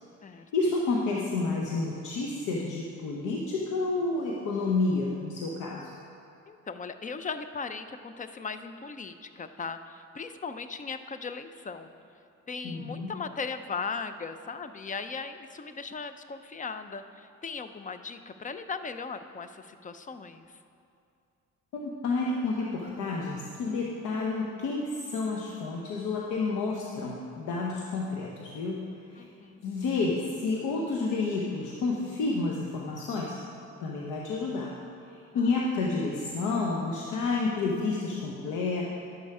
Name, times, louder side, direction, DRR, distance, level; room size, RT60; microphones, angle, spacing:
voice 1, 0.5-5.9 12.6-13.1 21.7-29.3 29.6-33.4 33.8-34.7 35.3-38.8, left 3 dB, 90° left, -2 dB, 1.0 m, -30 dB
voice 2, 6.5-11.9 12.5-20.5 29.2-29.6, left 5 dB, 25° left, 10 dB, 0.5 m, -38 dB
11.0 x 6.8 x 4.8 m, 2.5 s
cardioid pair, 90°, 30 cm